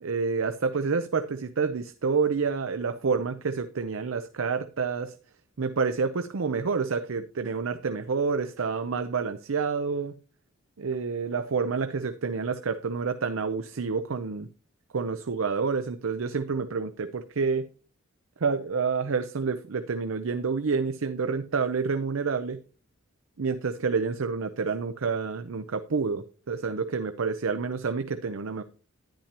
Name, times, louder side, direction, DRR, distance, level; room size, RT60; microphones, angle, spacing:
voice 1, 0.0-5.2 5.6-10.2 10.8-14.5 14.9-17.7 18.4-22.6 23.4-28.6, right 5 dB, 85° right, 0.6 m, -28 dB
10.5 x 10.0 x 2.9 m
head